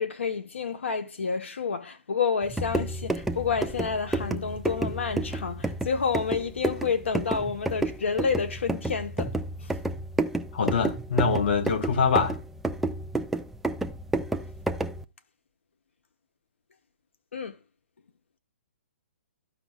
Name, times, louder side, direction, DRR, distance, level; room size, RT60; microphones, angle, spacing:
voice 1, 0.0-9.3 17.3-17.5, left 5 dB, 90° left, 1.1 m, -29 dB
sound 1, 2.4-15.0, right 2 dB, 5° right, 0.3 m, -31 dB
voice 2, 10.5-12.4, left 5 dB, 55° left, 1.0 m, -24 dB
14.0 x 5.2 x 2.4 m
hypercardioid pair, 155°, 6 cm